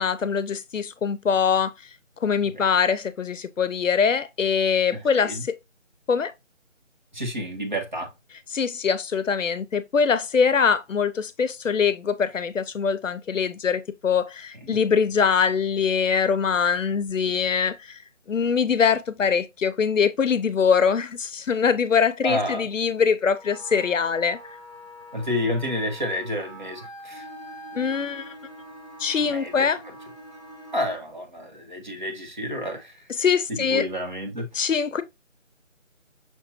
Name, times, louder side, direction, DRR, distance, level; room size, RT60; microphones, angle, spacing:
voice 1, 0.0-1.7 2.2-5.6 6.1-6.3 8.5-18.0 18.3-24.4 27.8-28.3 29.0-29.8 33.2-33.8 34.5-35.0, left 6 dB, 75° left, 0.6 m, -23 dB
voice 2, 4.9-5.4 7.1-8.1 14.7-14.8 22.2-22.7 25.1-27.3 29.3-29.7 30.7-33.0 33.5-34.7, left 1 dB, 40° right, 0.8 m, -30 dB
Wind instrument woodwind instrument, 23.3-31.0, equal, 25° left, 0.8 m, -45 dB
Bowed string instrument, 27.1-31.2, equal, 5° left, 1.1 m, -45 dB
5.7 x 2.7 x 2.8 m
figure-of-eight pair, 170°, 39 cm